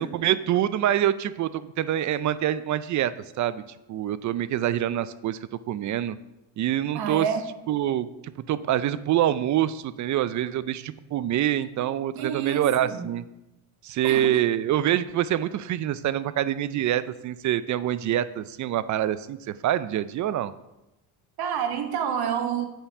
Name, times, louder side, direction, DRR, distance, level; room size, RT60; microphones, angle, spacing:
voice 1, 0.0-3.1 3.4-3.6 3.9-5.4 5.7-6.2 6.6-7.3 7.7-13.2 13.8-20.5, right 11 dB, 45° right, 15 dB, 0.4 m, -25 dB
voice 2, 6.9-7.5 12.1-13.1 14.0-14.3 21.4-22.7, right 8 dB, 60° right, 7 dB, 1.3 m, -28 dB
7.3 x 5.3 x 5.6 m, 0.95 s
cardioid pair, 100°, 43 cm